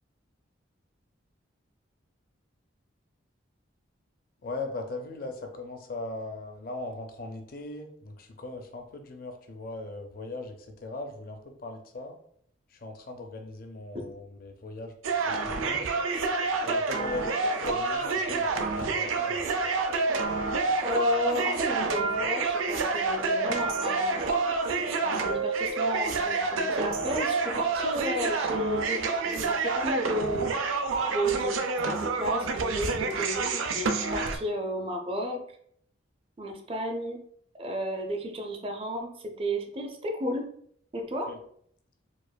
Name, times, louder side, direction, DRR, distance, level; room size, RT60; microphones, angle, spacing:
voice 1, 4.4-12.2 12.7-16.0 16.6-19.7 41.3-41.4, left 2 dB, 45° left, 4 dB, 0.5 m, -39 dB
sound 1, 15.0-34.4, right 4 dB, 85° right, 0.4 m, -28 dB
voice 2, 20.8-30.6 31.1-35.4 36.4-37.2 37.6-40.5 40.9-41.4, equal, 30° right, 4 dB, 0.4 m, -33 dB
4.7 x 2.5 x 2.2 m, 0.65 s
head